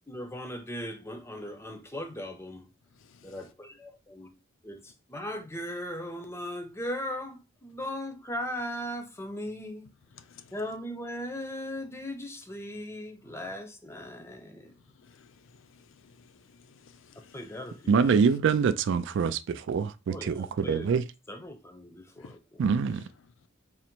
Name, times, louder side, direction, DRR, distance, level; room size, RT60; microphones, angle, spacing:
voice 1, 0.1-2.6 3.2-4.4 4.6-9.9 10.5-14.7 17.3-18.2 20.1-20.9 21.3-22.6, left 1 dB, 15° left, 0.6 m, -38 dB
voice 2, 10.1-10.5 15.0-17.4 22.2-22.4, left 5 dB, 65° left, 0.4 m, -55 dB
voice 3, 17.9-21.0 22.6-23.0, right 6 dB, 60° right, 0.3 m, -25 dB
3.8 x 2.0 x 4.4 m
head